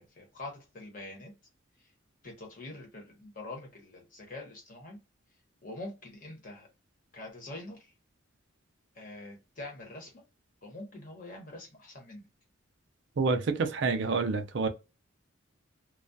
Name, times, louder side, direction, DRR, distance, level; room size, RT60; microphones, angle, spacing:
voice 1, 0.0-1.3 2.2-5.0 5.6-6.7 7.1-7.9 8.9-10.2 10.6-12.3, left 2 dB, 40° left, 0.9 m, -44 dB
voice 2, 13.2-14.7, right 4 dB, 60° right, 0.4 m, -28 dB
2.3 x 2.2 x 2.5 m
head